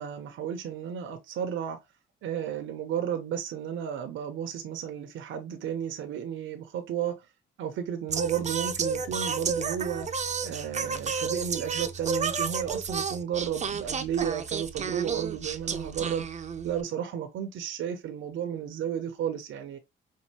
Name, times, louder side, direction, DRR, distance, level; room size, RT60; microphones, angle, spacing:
voice 1, 0.0-1.8 2.2-7.3 7.6-10.1 10.4-16.3 16.6-19.8, right 9 dB, 75° right, 0.9 m, -33 dB
Singing, 8.1-16.8, right 5 dB, 35° right, 0.7 m, -32 dB
5.4 x 2.6 x 2.9 m
cardioid pair, 90°, 20 cm